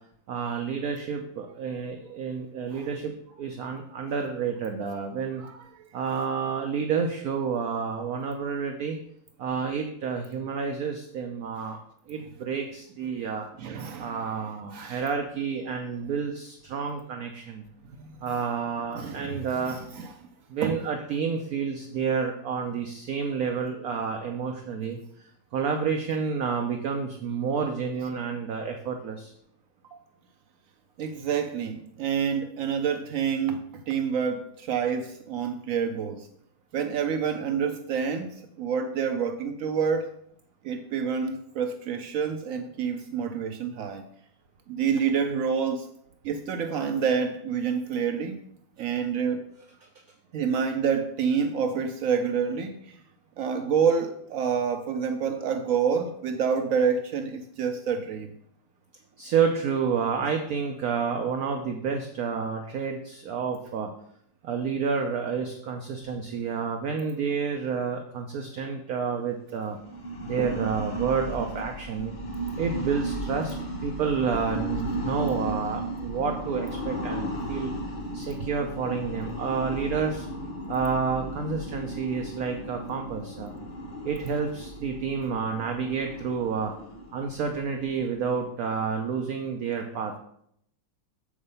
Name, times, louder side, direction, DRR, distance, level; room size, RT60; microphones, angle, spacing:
voice 1, 0.3-5.4 5.9-9.0 9.4-11.8 12.1-13.5 14.0-17.6 18.2-19.8 20.5-25.0 25.5-29.3 59.2-63.9 64.4-69.8 70.2-72.1 72.6-73.5 73.8-77.7 78.1-80.3 80.7-83.5 84.0-86.7 87.1-90.1, right 6 dB, 65° right, 4 dB, 1.0 m, -29 dB
voice 2, 5.4-5.9 11.5-11.7 13.6-14.3 14.7-15.0 18.0-18.3 18.9-20.1 20.6-20.8 29.8-30.0 31.0-36.3 36.7-40.1 40.6-44.0 44.7-45.9 46.2-48.4 48.8-49.4 50.3-53.0 53.4-58.4 70.4-70.5 78.4-78.5, right 6 dB, 90° right, 7 dB, 0.7 m, -28 dB
sound 1, 69.7-88.5, right 1 dB, 35° left, 0.8 m, -35 dB
7.2 x 4.9 x 5.4 m, 0.70 s
omnidirectional pair, 2.1 m